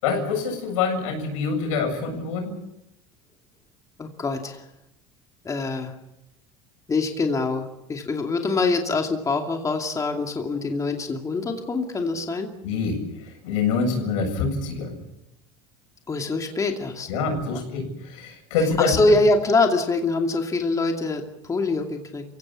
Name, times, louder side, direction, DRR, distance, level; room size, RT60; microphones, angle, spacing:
voice 1, 0.0-2.5 12.6-13.0 13.4-15.0 17.1-19.0, left 5 dB, 90° left, 4 dB, 7.5 m, -25 dB
voice 2, 4.0-4.6 5.4-5.9 6.9-12.5 16.1-17.1 18.6-22.2, left 3 dB, 20° left, 3 dB, 2.5 m, -24 dB
28.0 x 16.5 x 8.4 m, 0.88 s
supercardioid pair, 125°, 16 cm